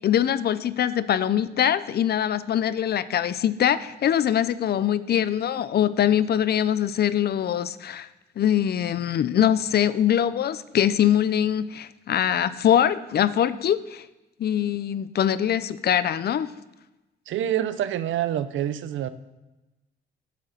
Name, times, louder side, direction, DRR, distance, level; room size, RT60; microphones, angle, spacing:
voice 1, 0.0-8.1 8.4-14.0 14.4-16.5, left 10 dB, 55° left, 15 dB, 0.6 m, -23 dB
voice 2, 17.3-19.1, right 11 dB, 75° right, 13 dB, 0.7 m, -26 dB
8.6 x 6.5 x 7.6 m, 1.1 s
cardioid pair, 90°, 20 cm